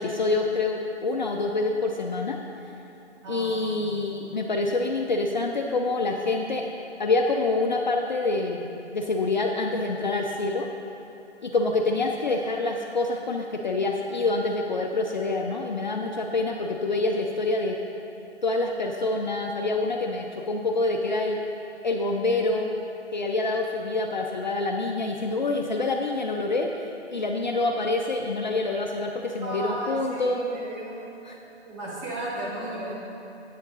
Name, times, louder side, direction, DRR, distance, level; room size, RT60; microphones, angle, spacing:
voice 1, 0.0-2.4 3.3-6.7 7.0-10.7 11.4-17.8 18.4-21.4 21.8-22.7 23.1-26.7 27.1-30.4 31.2-31.4, left 3 dB, 45° left, 1 dB, 0.4 m, -26 dB
voice 2, 3.2-3.9 29.4-31.0 31.7-32.9, right 1 dB, 25° right, -7 dB, 1.8 m, -34 dB
8.2 x 6.4 x 4.0 m, 2.9 s
figure-of-eight pair, 145°, 35 cm